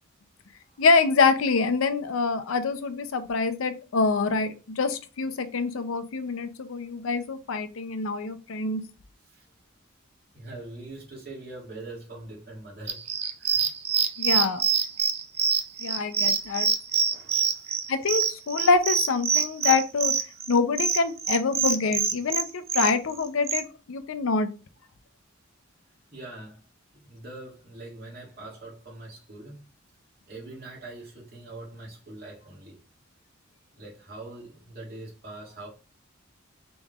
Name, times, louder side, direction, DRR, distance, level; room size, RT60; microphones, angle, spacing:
voice 1, 0.8-8.8 14.2-14.6 15.8-16.7 17.9-20.1 20.5-24.5, left 4 dB, 80° left, 0.5 m, -25 dB
voice 2, 10.3-13.7 17.1-17.7 26.1-26.6 27.1-29.6 30.3-32.8 33.8-35.7, right 2 dB, 50° right, 2.0 m, -43 dB
sound 1, 12.9-23.6, right 7 dB, 30° right, 0.4 m, -25 dB
5.3 x 3.0 x 2.4 m
head